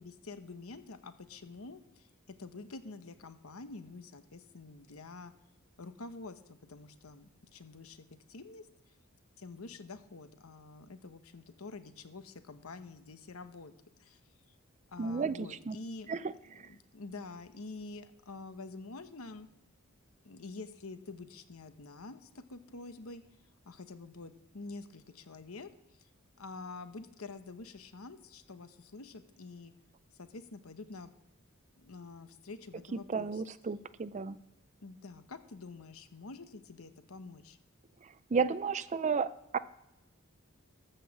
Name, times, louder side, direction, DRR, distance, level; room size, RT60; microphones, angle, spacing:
voice 1, 0.0-2.1 2.4-5.3 5.8-9.0 9.4-13.7 14.0-14.2 14.5-14.6 14.9-16.1 16.5-19.5 20.2-23.2 23.6-26.1 26.4-29.7 30.2-31.1 31.8-33.4 34.8-37.6, left 3 dB, 75° left, 10 dB, 1.0 m, -47 dB
voice 2, 15.0-15.8 16.1-16.2 33.1-34.4 38.3-39.6, right 5 dB, 35° right, 15 dB, 0.4 m, -32 dB
13.5 x 5.5 x 7.1 m, 0.90 s
head